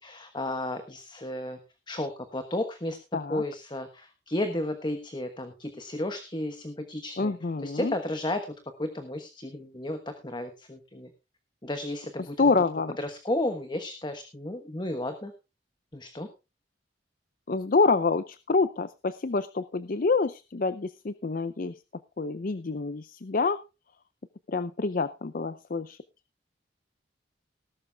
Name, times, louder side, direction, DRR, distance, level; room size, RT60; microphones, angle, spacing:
voice 1, 0.0-1.6 1.9-3.0 3.3-7.3 7.6-11.1 11.6-12.6 13.0-15.3 15.9-16.3, left 1 dB, 25° left, 8 dB, 1.2 m, -33 dB
voice 2, 7.2-7.9 12.4-12.9 17.5-21.7 22.2-23.6 24.5-26.0, left 4 dB, 50° left, 16 dB, 0.5 m, -27 dB
19.0 x 12.0 x 2.3 m, 0.28 s
head